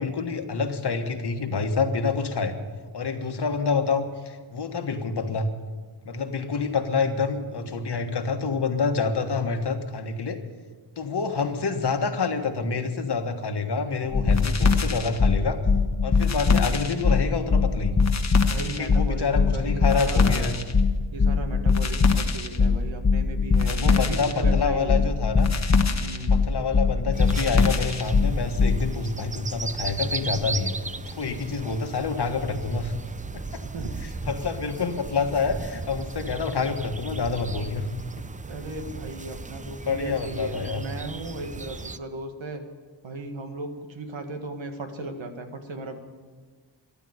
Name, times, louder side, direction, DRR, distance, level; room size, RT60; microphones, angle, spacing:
voice 1, 0.0-2.5 2.9-5.5 6.0-10.4 11.0-15.6 16.0-18.0 18.8-20.6 23.6-25.5 26.3-30.7 31.1-32.9 33.3-33.6 34.0-37.9 39.9-40.8, left 4 dB, 55° left, 6 dB, 1.5 m, -27 dB
voice 2, 7.9-8.3 13.8-14.4 18.5-20.6 21.1-25.0 26.0-26.4 33.7-33.9 38.5-42.6 43.0-46.0, right 2 dB, 75° right, 5 dB, 1.9 m, -36 dB
sound 1, 14.1-28.8, left 4 dB, 35° left, 1.1 m, -21 dB
sound 2, 27.1-42.0, right 3 dB, 15° right, 0.5 m, -36 dB
14.0 x 11.5 x 7.9 m, 1.4 s
wide cardioid pair, 105°, 47 cm